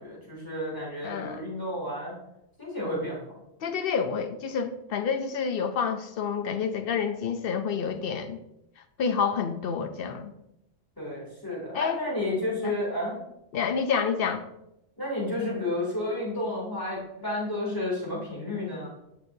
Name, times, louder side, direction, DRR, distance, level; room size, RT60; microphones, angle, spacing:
voice 1, 0.0-2.1 2.6-3.2 11.0-13.1 15.0-18.9, left 1 dB, 15° left, -6 dB, 2.9 m, -31 dB
voice 2, 1.0-1.4 3.6-8.4 8.8-10.3 11.7-12.0 12.6-12.7 13.5-14.4, left 6 dB, 60° left, 8 dB, 0.7 m, -29 dB
8.7 x 6.1 x 2.7 m, 0.85 s
omnidirectional pair, 1.2 m